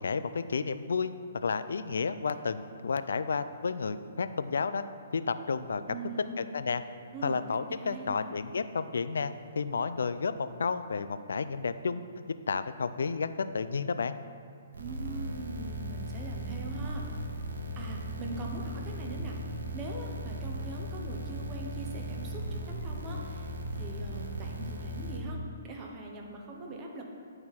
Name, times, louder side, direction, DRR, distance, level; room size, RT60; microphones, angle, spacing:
voice 1, 0.0-4.8 5.1-5.8 6.4-6.8 7.2-12.0 12.5-14.2, left 5 dB, 80° left, 12 dB, 0.4 m, -31 dB
voice 2, 5.9-6.5 7.1-8.4 14.8-17.1 17.8-19.4 19.7-27.0, right 3 dB, 20° right, -1 dB, 1.1 m, -42 dB
sound 1, 14.7-25.2, equal, 85° right, 1.0 m, -37 dB
10.5 x 4.4 x 4.3 m, 2.3 s
hypercardioid pair, 155°, 0 cm